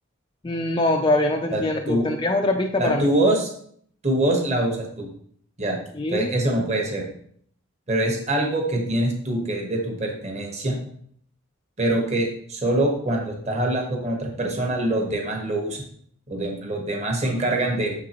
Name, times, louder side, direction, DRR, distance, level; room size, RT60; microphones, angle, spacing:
voice 1, 0.4-3.1 5.9-6.3, left 2 dB, 20° left, 2 dB, 0.4 m, -23 dB
voice 2, 1.5-2.1 2.8-3.5 4.0-5.1 5.6-5.8 6.1-7.1 7.9-10.8 11.8-15.8 16.3-17.9, right 1 dB, 30° right, 1 dB, 1.2 m, -24 dB
7.3 x 6.5 x 3.0 m, 0.62 s
head